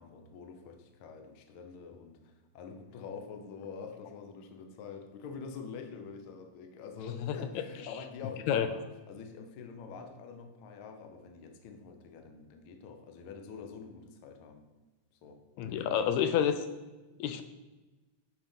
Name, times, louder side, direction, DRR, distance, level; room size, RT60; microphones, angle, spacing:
voice 1, 0.0-14.6 15.1-16.1, left 5 dB, 60° left, 5 dB, 1.5 m, -46 dB
voice 2, 15.6-16.5 17.2-17.4, left 9 dB, 80° left, 9 dB, 1.9 m, -28 dB
8.9 x 5.7 x 5.6 m, 1.1 s
omnidirectional pair, 3.3 m